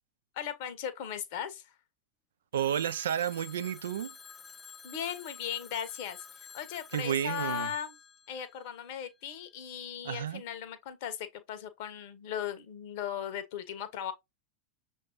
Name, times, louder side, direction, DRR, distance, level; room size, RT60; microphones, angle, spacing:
voice 1, 0.3-1.7 4.8-8.0 8.3-14.1, left 9 dB, 50° left, 0.9 m, -38 dB
Telephone, 2.5-9.3, left 6 dB, 15° left, 0.3 m, -50 dB
voice 2, 2.5-4.2 6.9-7.7 10.0-10.4, right 9 dB, 60° right, 0.3 m, -31 dB
6.6 x 2.7 x 3.0 m
figure-of-eight pair, 90°, 0 cm